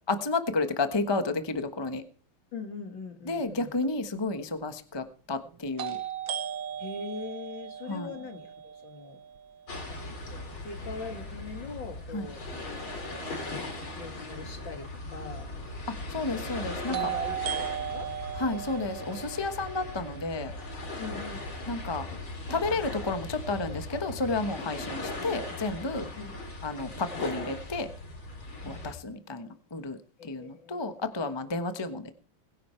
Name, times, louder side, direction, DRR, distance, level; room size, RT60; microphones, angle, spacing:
voice 1, 0.1-2.0 3.3-6.0 7.9-8.1 12.1-12.3 16.1-17.1 18.3-20.5 21.7-22.1 22.5-26.1 26.6-27.9 28.7-32.1, left 3 dB, 15° left, 8 dB, 1.0 m, -31 dB
voice 2, 2.5-3.8 6.8-9.2 9.9-12.5 13.5-15.5 16.9-18.2 21.0-21.5 26.1-26.3 28.6-28.9 30.2-30.8 31.1-31.2, left 4 dB, 65° left, 6 dB, 3.1 m, -42 dB
sound 1, 3.8-3.9 5.8-9.7 16.9-21.0, right 10 dB, 75° right, 2.1 m, -37 dB
sound 2, 9.7-28.9, left 2 dB, 85° left, 4.9 m, -39 dB
21.5 x 10.5 x 4.5 m, 0.41 s
omnidirectional pair, 2.2 m